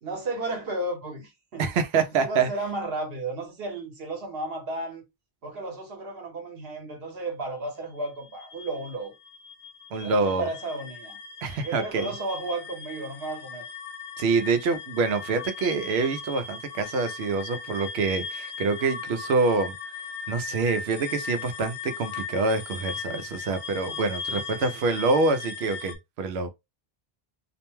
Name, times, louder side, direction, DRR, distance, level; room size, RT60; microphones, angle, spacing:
voice 1, 0.0-1.7 2.0-5.0 5.4-9.1 10.0-11.2 11.6-13.6 24.3-24.9, right 2 dB, 70° right, 1.1 m, -34 dB
voice 2, 1.6-2.5 9.9-10.5 11.4-12.1 14.2-19.7 20.3-26.5, right 4 dB, 85° right, 0.8 m, -26 dB
sound 1, 8.1-26.0, left 5 dB, 75° left, 0.8 m, -38 dB
2.5 x 2.1 x 3.0 m
omnidirectional pair, 1.0 m